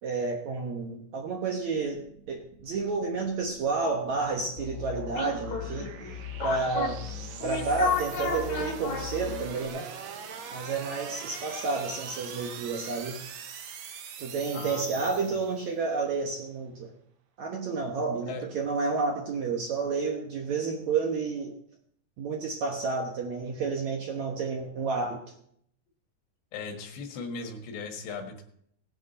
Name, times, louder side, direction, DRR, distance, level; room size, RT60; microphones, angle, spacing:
voice 1, 0.0-5.9 6.4-7.0 7.4-9.9 10.5-13.3 14.2-16.9 17.4-21.5 22.2-25.2, right 4 dB, 65° right, 1 dB, 1.9 m, -30 dB
sound 1, 1.5-15.8, right 7 dB, 90° right, 1.5 m, -43 dB
sound 2, 4.6-9.7, left 6 dB, 60° left, 3.7 m, -33 dB
voice 2, 14.5-15.4 18.2-18.5 26.5-28.4, left 4 dB, 90° left, 3 dB, 4.0 m, -38 dB
18.0 x 9.9 x 4.2 m, 0.69 s
omnidirectional pair, 4.8 m